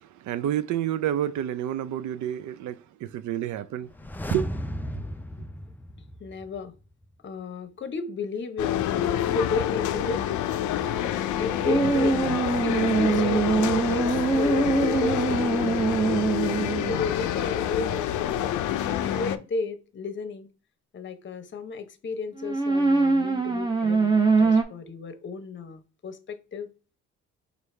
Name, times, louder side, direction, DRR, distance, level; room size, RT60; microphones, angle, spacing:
voice 1, 0.0-3.9 4.3-4.5, right 11 dB, 75° right, 0.5 m, -29 dB
sound 1, 3.8-6.8 7.0-7.1, equal, 5° left, 0.3 m, -35 dB
voice 2, 6.2-6.7 7.2-10.3 10.7-12.2 12.6-16.4 16.9-18.5 18.8-20.5 20.9-26.7, left 4 dB, 40° left, 0.8 m, -34 dB
sound 2, 8.6-19.4, left 11 dB, 75° left, 0.5 m, -27 dB
sound 3, 11.7-17.1 22.4-24.6, right 4 dB, 15° right, 0.8 m, -23 dB
4.6 x 2.6 x 3.2 m
cardioid pair, 90°, 30 cm